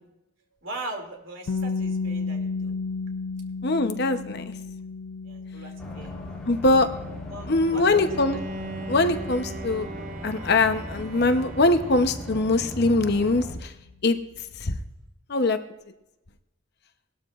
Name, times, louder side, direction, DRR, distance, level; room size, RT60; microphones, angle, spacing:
voice 1, 0.6-2.7 5.2-6.1 7.3-8.5, right 2 dB, 65° right, 2 dB, 2.6 m, -40 dB
sound 1, 1.5-13.3, left 4 dB, 75° left, 0.4 m, -35 dB
voice 2, 3.6-4.4 6.5-6.9 7.5-8.4 8.9-9.9 10.2-13.7 14.0-14.2 14.6-14.8 15.3-15.6, left 2 dB, 50° left, 8 dB, 0.8 m, -22 dB
sound 2, 5.8-13.6, left 1 dB, 5° left, 2.7 m, -38 dB
Bowed string instrument, 7.8-12.8, right 2 dB, 35° right, 0.5 m, -40 dB
20.0 x 12.5 x 2.5 m, 0.91 s
head